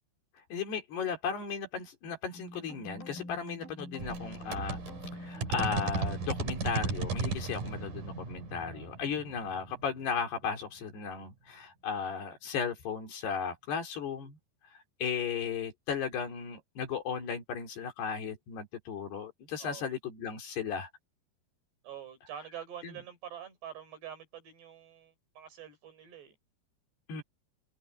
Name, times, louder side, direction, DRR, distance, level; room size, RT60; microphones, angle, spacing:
voice 1, 0.5-4.8 5.1-14.4 14.7-20.9 22.8-22.9 27.1-27.2, left 6 dB, 75° left, 5.5 m, -35 dB
sound 1, 2.3-7.2, left 1 dB, 60° left, 9.0 m, -46 dB
sound 2, 4.0-10.4, right 4 dB, 50° right, 5.2 m, -36 dB
voice 2, 19.6-19.9 21.8-26.4, right 9 dB, 85° right, 7.1 m, -46 dB
omnidirectional pair, 4.7 m